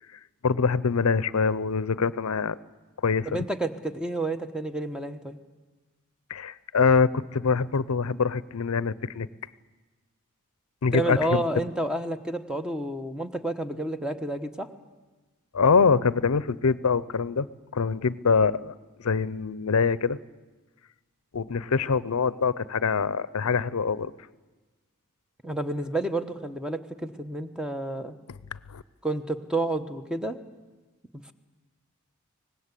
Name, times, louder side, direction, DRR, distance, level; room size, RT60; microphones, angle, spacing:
voice 1, 0.4-2.6 3.0-3.3 6.3-9.3 10.8-11.4 15.5-17.5 17.7-18.7 19.0-20.2 21.3-24.1 28.7-28.8, left 5 dB, 80° left, 18 dB, 0.6 m, -24 dB
voice 2, 3.3-5.4 10.9-14.7 25.4-28.1 29.0-30.4 31.1-31.3, right 2 dB, 5° right, 8 dB, 1.0 m, -30 dB
24.0 x 19.5 x 8.3 m, 1.2 s
head